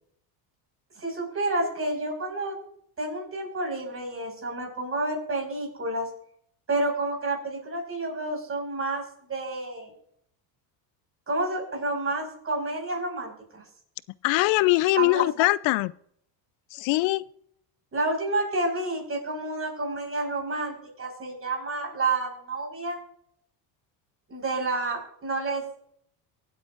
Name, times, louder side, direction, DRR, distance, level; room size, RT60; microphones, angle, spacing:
voice 1, 1.0-2.6 3.0-6.1 6.7-9.0 9.3-9.9 11.3-13.6 15.0-15.2 17.9-23.0 24.3-25.6, right 2 dB, 30° right, 1 dB, 5.4 m, -29 dB
voice 2, 14.2-15.9 16.7-17.2, left 20 dB, 65° left, 19 dB, 0.6 m, -22 dB
23.5 x 8.7 x 2.5 m, 0.68 s
supercardioid pair, 110°, 48 cm